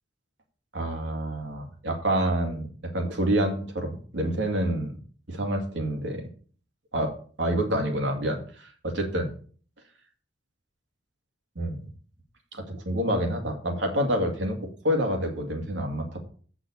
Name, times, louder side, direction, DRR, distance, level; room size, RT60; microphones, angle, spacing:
voice 1, 0.7-2.7 2.9-4.9 5.3-6.3 6.9-7.1 7.4-9.3 11.6-11.8 12.5-16.2, right 1 dB, 85° right, 3 dB, 2.4 m, -27 dB
8.2 x 6.1 x 7.0 m, 0.44 s
head